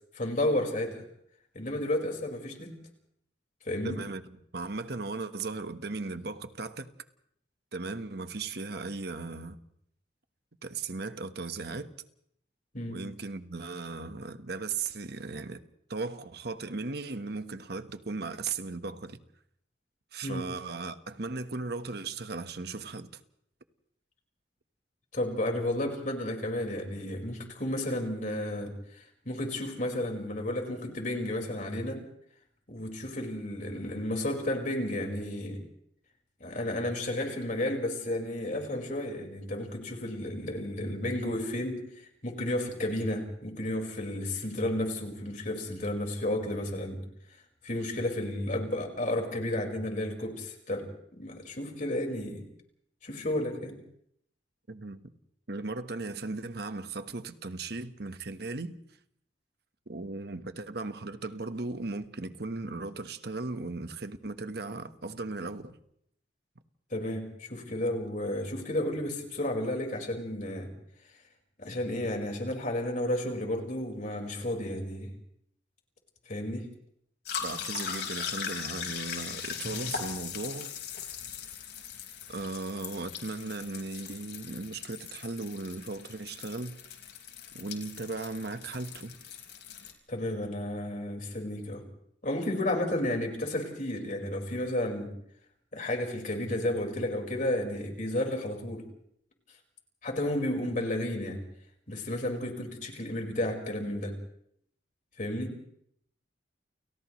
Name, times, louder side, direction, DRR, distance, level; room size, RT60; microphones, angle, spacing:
voice 1, 0.1-1.0 1.5-2.7 3.6-4.0 12.7-13.0 20.2-20.4 25.1-32.0 32.7-35.6 36.4-41.8 42.2-47.0 47.6-52.4 53.0-53.8 66.9-70.7 71.6-75.1 76.3-76.6 90.1-91.8 92.2-95.1 95.7-98.8 100.0-101.4 101.9-104.1 105.2-105.5, left 1 dB, 45° left, 5.0 m, -32 dB
voice 2, 3.8-4.2 4.5-6.9 7.7-9.6 10.6-11.9 12.9-15.6 15.9-19.2 20.1-23.2 54.7-55.1 55.5-58.8 59.9-65.8 77.4-80.8 82.3-86.8 87.5-89.2, right 3 dB, 60° right, 1.3 m, -37 dB
sound 1, 77.3-89.9, left 7 dB, 60° left, 5.1 m, -39 dB
30.0 x 30.0 x 3.2 m
head